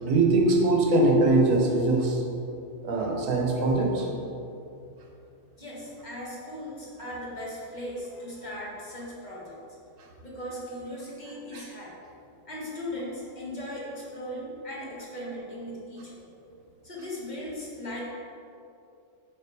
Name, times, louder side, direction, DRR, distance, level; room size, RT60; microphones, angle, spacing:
voice 1, 0.0-2.2 2.8-4.1 11.5-11.6, right 2 dB, 75° right, 1 dB, 1.3 m, -22 dB
voice 2, 5.6-9.6 10.2-12.0 12.4-16.2 16.8-18.0, left 1 dB, 35° left, -5 dB, 1.4 m, -38 dB
5.8 x 5.1 x 4.6 m, 2.6 s
omnidirectional pair, 1.4 m